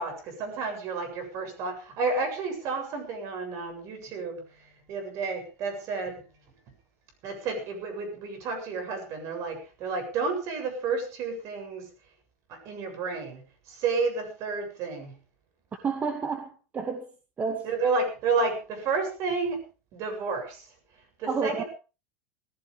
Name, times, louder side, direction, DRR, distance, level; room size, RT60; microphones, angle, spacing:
voice 1, 0.0-6.2 7.2-11.9 12.5-15.2 17.6-19.6 19.9-20.7 21.2-21.7, right 4 dB, 40° right, 6 dB, 7.6 m, -31 dB
voice 2, 15.8-17.1 17.4-17.6 21.3-21.6, right 5 dB, 20° right, 5 dB, 2.2 m, -30 dB
20.5 x 15.5 x 3.5 m, 0.33 s
supercardioid pair, 155°, 8 cm